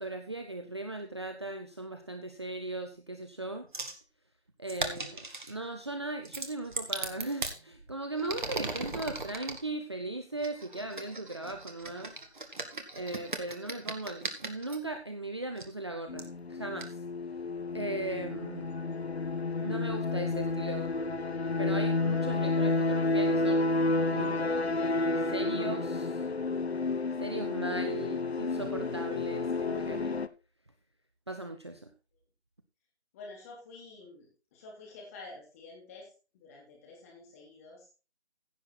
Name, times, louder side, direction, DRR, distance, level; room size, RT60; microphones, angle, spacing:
voice 1, 0.0-3.7 4.6-12.1 12.9-17.0 17.7-18.7 19.6-20.9 21.6-23.7 24.1-24.4 24.9-26.2 27.2-30.2 31.3-31.9, right 2 dB, 25° right, 6 dB, 0.8 m, -38 dB
sound 1, 3.7-4.0 4.7-5.5 6.2-7.6 8.1-9.6 10.4-14.8 15.6-15.7 16.2-16.3 16.8-16.9, right 3 dB, 45° right, 2.1 m, -38 dB
sound 2, 16.1-30.3, left 3 dB, 70° left, 1.1 m, -30 dB
voice 2, 33.1-36.1 36.3-37.9, left 3 dB, 15° left, -2 dB, 3.3 m, -49 dB
16.0 x 6.7 x 4.3 m, 0.33 s
figure-of-eight pair, 160°, 33 cm